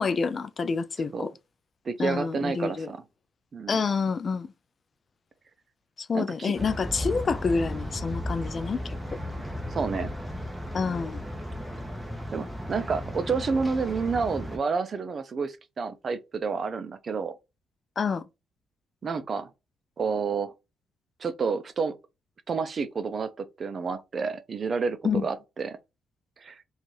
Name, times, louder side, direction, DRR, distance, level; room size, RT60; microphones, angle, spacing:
voice 1, 0.0-1.3 2.0-2.9 3.7-4.5 6.0-9.0 10.7-11.2 18.0-18.2 25.0-25.2, left 5 dB, 40° left, 0.3 m, -28 dB
voice 2, 1.8-3.0 3.5-3.8 6.1-6.5 9.7-10.1 12.3-17.3 19.0-19.5 20.0-20.5 21.2-22.0 22.5-25.8 26.4-26.6, right 5 dB, 45° right, 0.5 m, -29 dB
sound 1, 6.5-14.6, equal, 5° right, 0.8 m, -35 dB
2.6 x 2.4 x 3.1 m
cardioid pair, 90°, 0 cm